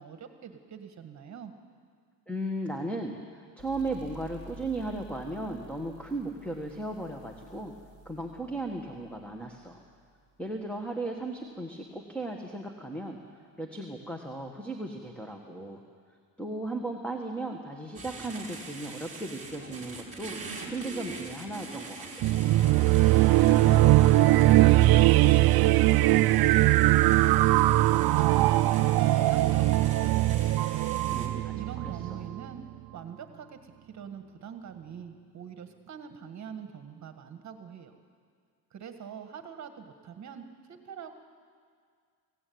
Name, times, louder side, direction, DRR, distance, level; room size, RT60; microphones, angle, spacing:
voice 1, 0.0-1.5 23.2-27.4 27.7-30.9 31.5-32.6 32.9-37.9 38.7-41.2, right 7 dB, 40° right, 7 dB, 1.6 m, -44 dB
voice 2, 2.3-7.7 8.1-9.8 10.4-13.2 13.6-15.8 16.4-20.4 20.7-22.4 31.1-32.2, right 2 dB, 5° left, 2 dB, 1.7 m, -36 dB
sound 1, 3.6-10.9, left 1 dB, 45° left, 4.2 m, -52 dB
sound 2, 17.9-31.3, right 3 dB, 15° right, 4.5 m, -43 dB
sound 3, 22.2-32.4, right 16 dB, 60° right, 0.5 m, -21 dB
24.0 x 16.0 x 9.5 m, 2.1 s
cardioid pair, 130°, 42 cm